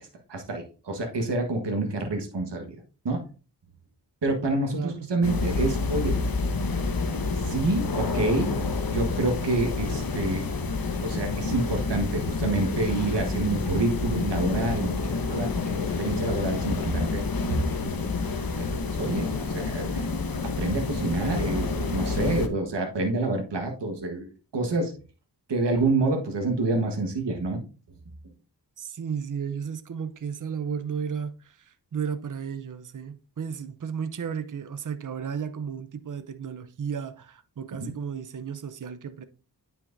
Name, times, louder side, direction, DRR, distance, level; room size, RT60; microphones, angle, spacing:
voice 1, 0.3-2.8 3.0-3.2 4.2-6.2 7.4-8.5 8.9-10.5 11.0-17.2 17.5-18.1 18.6-20.1 20.6-24.9 25.5-27.6 37.8-37.9, right 2 dB, 85° right, 1.5 m, -28 dB
sound 1, 5.2-22.5, left 4 dB, 60° left, 1.1 m, -28 dB
voice 2, 28.8-39.2, right 7 dB, 50° right, 0.7 m, -34 dB
9.4 x 5.9 x 2.6 m
wide cardioid pair, 60°, 41 cm